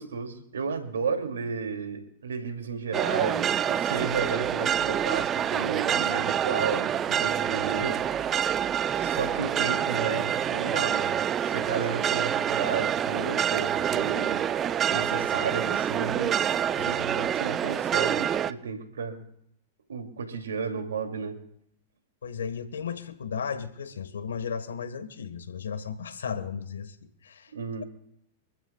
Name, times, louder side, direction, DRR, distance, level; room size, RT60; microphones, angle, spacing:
voice 1, 0.0-8.6 9.0-14.4 14.9-16.4 16.8-19.2 19.9-21.3 27.5-27.8, right 5 dB, 85° right, 2.7 m, -33 dB
sound 1, 2.9-18.5, right 9 dB, 30° right, 0.6 m, -27 dB
voice 2, 16.8-17.1 22.2-27.5, left 6 dB, 85° left, 1.5 m, -35 dB
26.0 x 14.5 x 2.4 m
hypercardioid pair, 110°, 0 cm